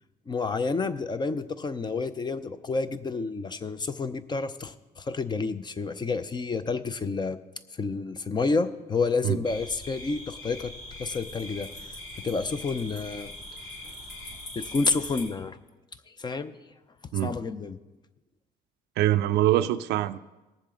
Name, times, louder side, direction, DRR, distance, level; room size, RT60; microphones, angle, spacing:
voice 1, 0.3-7.4 7.8-10.7 11.0-11.7 12.2-13.3 14.6-15.6 16.2-16.5 17.2-17.8, left 4 dB, 25° left, 12 dB, 0.6 m, -29 dB
sound 1, 9.4-15.2, left 1 dB, 80° left, 4.0 m, -41 dB
voice 2, 19.0-20.2, right 13 dB, 75° right, 13 dB, 0.5 m, -23 dB
19.0 x 7.3 x 3.8 m, 1.1 s
cardioid pair, 110°, 17 cm